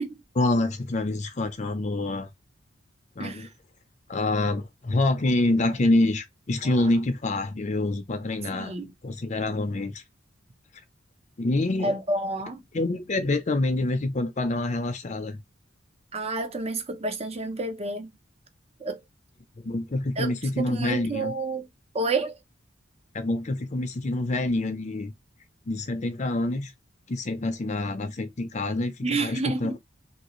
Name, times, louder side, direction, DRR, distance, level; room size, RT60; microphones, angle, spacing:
voice 1, 0.4-2.3 3.2-3.5 4.1-8.8 9.0-10.0 11.4-11.9 12.7-15.4 19.6-21.3 23.1-25.1 25.7-26.7 27.1-29.8, left 2 dB, 40° left, 0.6 m, -26 dB
voice 2, 8.5-8.9 11.8-12.6 16.1-18.1 18.8-19.0 20.2-21.7 21.9-22.4 29.0-29.8, right 2 dB, 35° right, 0.6 m, -29 dB
2.8 x 2.6 x 3.0 m
head